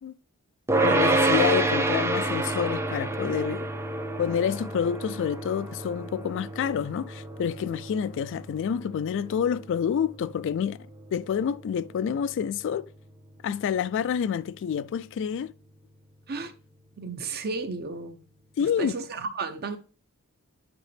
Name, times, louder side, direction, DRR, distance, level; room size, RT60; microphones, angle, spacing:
sound 1, 0.7-12.0, right 2 dB, 10° right, 0.6 m, -28 dB
voice 1, 0.8-3.7 4.2-10.8 11.1-12.9 13.4-15.5 18.6-18.9, left 8 dB, 55° left, 0.3 m, -28 dB
voice 2, 17.0-18.2 18.6-19.8, right 4 dB, 45° right, 0.8 m, -33 dB
9.0 x 4.9 x 3.4 m
head